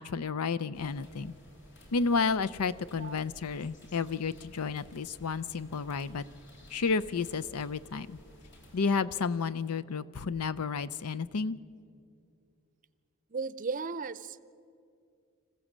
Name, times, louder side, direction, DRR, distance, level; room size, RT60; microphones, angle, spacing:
voice 1, 0.0-1.3 1.9-6.2 6.7-8.2 8.7-11.6, left 5 dB, 90° left, 15 dB, 0.6 m, -31 dB
sound 1, 0.7-8.9, equal, 55° left, 3.8 m, -55 dB
voice 2, 13.3-14.4, right 4 dB, 35° right, 15 dB, 0.6 m, -35 dB
26.0 x 15.0 x 7.4 m, 2.4 s
head